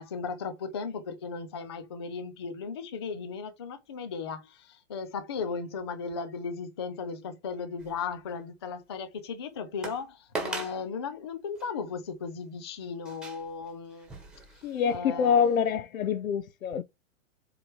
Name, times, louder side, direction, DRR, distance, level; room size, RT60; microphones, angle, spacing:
voice 1, 0.0-14.1 14.9-15.4, left 5 dB, 20° left, 0.4 m, -36 dB
sound 1, 7.8-8.4 8.9-9.0 9.8-10.0 10.3-10.8 11.5-11.7 13.0-15.0 15.4-15.5, right 3 dB, ahead, 1.4 m, -39 dB
voice 2, 14.6-16.8, left 7 dB, 75° left, 1.1 m, -26 dB
7.7 x 3.3 x 4.5 m
hypercardioid pair, 165°, 41 cm